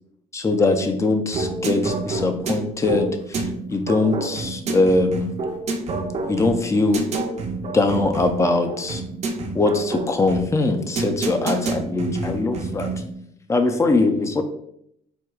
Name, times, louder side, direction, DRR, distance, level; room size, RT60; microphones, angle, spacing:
voice 1, 0.3-3.4 3.7-5.3 6.3-7.0 7.6-9.0 9.5-12.9 13.5-14.4, left 2 dB, 15° left, 6 dB, 0.4 m, -21 dB
sound 1, 1.3-13.1, right 3 dB, 40° right, 0.6 m, -28 dB
4.4 x 2.3 x 2.3 m, 0.72 s
cardioid pair, 110°, 17 cm